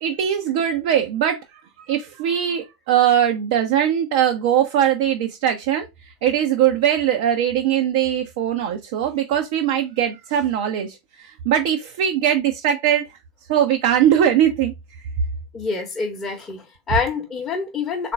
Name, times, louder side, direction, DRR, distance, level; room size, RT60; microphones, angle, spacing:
voice 1, 0.0-1.4 1.9-5.9 6.2-13.0 13.5-14.7, right 10 dB, 50° right, 0.5 m, -20 dB
voice 2, 15.5-18.1, left 5 dB, 20° left, 0.9 m, -26 dB
3.7 x 2.5 x 4.4 m
figure-of-eight pair, 90°, 0 cm